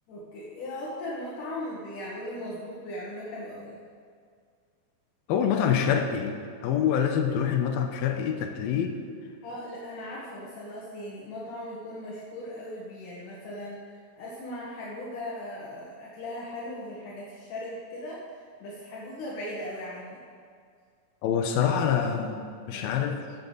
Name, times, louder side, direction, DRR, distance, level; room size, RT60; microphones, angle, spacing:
voice 1, 0.1-3.8 9.4-20.2 21.6-22.3 22.7-23.1, left 1 dB, 65° left, -6 dB, 3.2 m, -38 dB
voice 2, 5.3-8.9 21.2-22.4 22.7-23.2, left 8 dB, 90° left, 5 dB, 2.7 m, -26 dB
15.5 x 9.2 x 4.0 m, 2.1 s
omnidirectional pair, 4.2 m